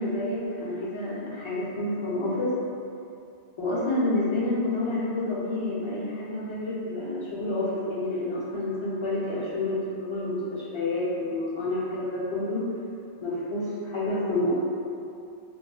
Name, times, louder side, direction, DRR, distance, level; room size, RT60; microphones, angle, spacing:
voice 1, 0.0-2.6 3.6-12.7 13.2-14.5, left 2 dB, 35° left, -7 dB, 0.6 m, -29 dB
2.9 x 2.1 x 3.8 m, 2.6 s
omnidirectional pair, 1.1 m